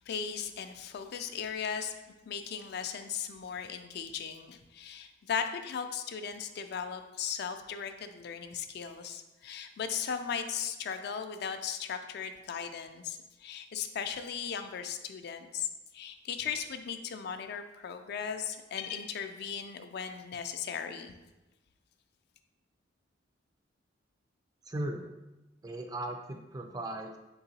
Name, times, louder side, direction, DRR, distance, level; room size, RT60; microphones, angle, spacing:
voice 1, 0.1-1.9 2.3-15.7 15.9-21.2, left 7 dB, 60° left, 8 dB, 0.3 m, -37 dB
voice 2, 24.7-25.1 25.6-27.2, right 1 dB, 20° right, 4 dB, 0.3 m, -37 dB
4.4 x 3.8 x 2.8 m, 1.0 s
head